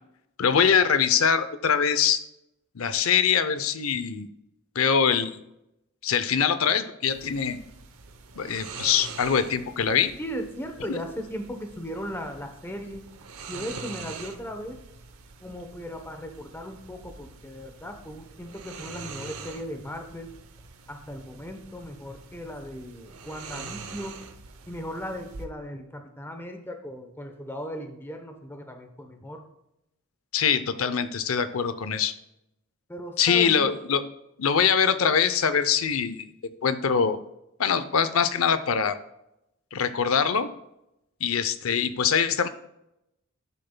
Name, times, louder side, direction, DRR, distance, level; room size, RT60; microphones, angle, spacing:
voice 1, 0.4-2.2 2.8-4.3 4.8-5.4 6.0-7.6 8.4-10.1 10.9-11.0 30.3-32.1 33.2-34.0 34.4-36.3 36.6-37.2 37.6-39.0 39.7-40.5 41.2-42.5, left 7 dB, 75° left, 12 dB, 0.6 m, -23 dB
sound 1, 7.0-25.5, right 5 dB, 90° right, 0.7 m, -44 dB
voice 2, 10.2-13.0 13.5-14.8 15.4-20.3 20.9-24.2 24.7-29.4 32.9-33.7, equal, 10° left, 5 dB, 0.8 m, -37 dB
11.5 x 6.6 x 2.2 m, 0.84 s
head